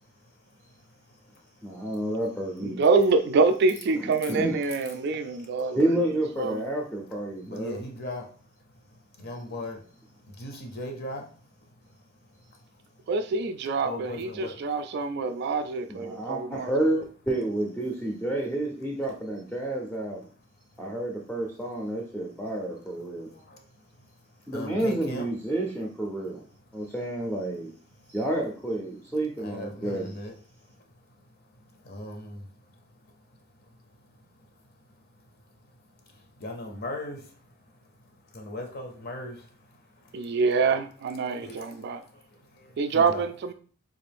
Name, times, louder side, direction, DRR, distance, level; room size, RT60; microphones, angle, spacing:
voice 1, 1.6-2.8 4.0-4.6 5.7-7.8 9.5-9.6 15.9-20.2 20.8-23.3 24.5-26.4 26.7-27.7 28.1-30.1, right 1 dB, 5° left, 0.5 m, -30 dB
voice 2, 2.6-6.6 13.1-16.7 40.1-42.0 42.8-43.5, right 4 dB, 55° right, 0.3 m, -26 dB
voice 3, 7.4-8.3 8.9-9.8 10.3-11.3 13.8-14.6 23.3-23.6 24.5-25.3 29.4-30.3 31.7-32.5 36.1-37.4 38.3-40.3 41.4-43.2, left 1 dB, 50° left, 0.6 m, -38 dB
3.7 x 2.5 x 3.4 m
head